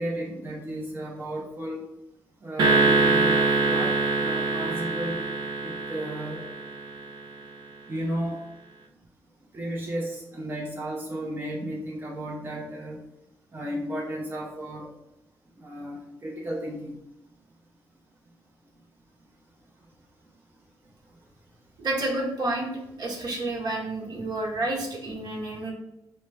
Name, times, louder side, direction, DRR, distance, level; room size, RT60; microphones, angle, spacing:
voice 1, 0.0-1.9 2.4-5.2 5.6-6.4 7.9-8.4 9.5-13.0 13.5-14.9 15.6-17.0, right 1 dB, 30° right, -2 dB, 0.6 m, -33 dB
sound 1, 2.6-7.1, right 3 dB, 80° right, 0.6 m, -24 dB
voice 2, 21.8-22.7 23.0-25.7, right 2 dB, 60° right, -2 dB, 1.1 m, -29 dB
4.3 x 2.1 x 3.3 m, 0.87 s
cardioid pair, 100°, 8 cm